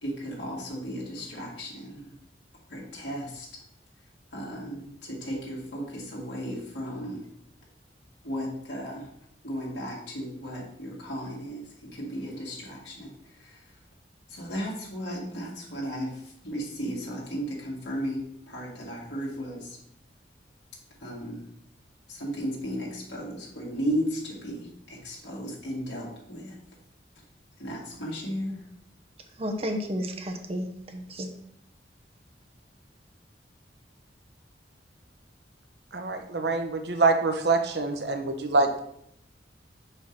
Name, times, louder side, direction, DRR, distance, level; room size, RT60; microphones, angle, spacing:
voice 1, 0.0-2.1 2.7-3.5 4.3-7.2 8.2-9.1 9.4-13.1 13.4-13.6 14.3-19.8 21.0-21.5 22.1-26.6 27.6-28.6, equal, 80° left, -5 dB, 2.1 m, -35 dB
voice 2, 29.4-31.3, equal, 35° right, 4 dB, 0.9 m, -32 dB
voice 3, 35.9-38.8, right 3 dB, 65° right, 6 dB, 0.8 m, -25 dB
5.6 x 5.1 x 4.5 m, 0.71 s
head